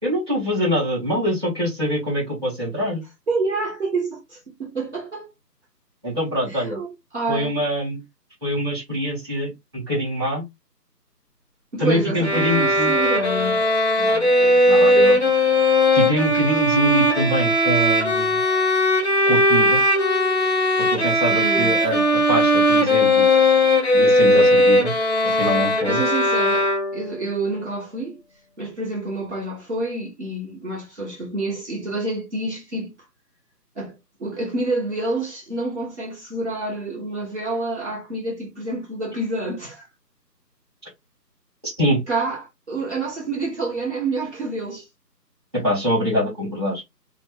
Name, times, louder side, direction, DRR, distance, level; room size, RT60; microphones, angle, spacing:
voice 1, 0.0-3.0 6.0-6.8 7.3-8.0 8.4-10.4 11.8-12.9 14.0-15.2 15.9-18.4 19.3-19.8 20.8-22.0 22.3-23.3 23.9-24.9 25.3-26.0 41.6-42.0 45.5-46.8, equal, 15° right, 1.5 m, -24 dB
voice 2, 3.3-5.3 6.5-7.6 11.7-13.6 21.3-21.7 25.9-28.2 28.6-32.9 33.8-39.9 42.1-44.9, right 2 dB, 45° right, 1.2 m, -28 dB
sound 1, 12.2-27.2, left 1 dB, 40° left, 0.7 m, -18 dB
3.0 x 2.1 x 3.5 m
figure-of-eight pair, 170°, 50 cm